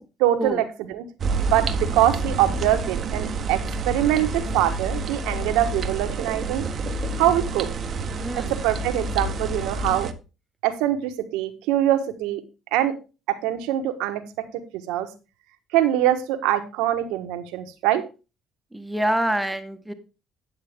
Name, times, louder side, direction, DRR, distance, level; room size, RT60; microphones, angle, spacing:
voice 1, 0.2-1.0 1.4-3.6 3.8-6.6 7.2-7.7 8.3-10.1 10.6-12.4 12.7-12.9 13.4-14.2 14.7-15.1 15.7-18.0, right 12 dB, 90° right, 8 dB, 1.3 m, -23 dB
sound 1, 1.2-10.1, right 3 dB, 50° right, 1.0 m, -28 dB
voice 2, 8.1-8.5 18.7-19.9, right 1 dB, 5° right, 8 dB, 1.5 m, -26 dB
9.6 x 7.8 x 3.6 m, 0.30 s
supercardioid pair, 80°, 0 cm